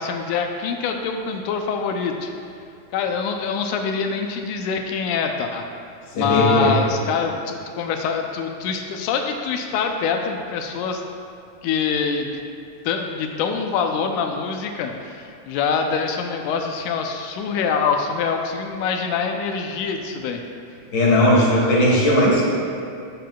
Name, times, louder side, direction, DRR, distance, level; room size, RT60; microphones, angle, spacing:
voice 1, 0.0-2.3 2.9-5.7 6.1-11.0 11.6-12.4 12.9-20.4, left 5 dB, 90° left, 4 dB, 2.1 m, -25 dB
voice 2, 6.2-6.7 20.9-22.4, left 1 dB, 40° left, -4 dB, 1.6 m, -17 dB
12.0 x 6.7 x 2.3 m, 2.5 s
omnidirectional pair, 3.4 m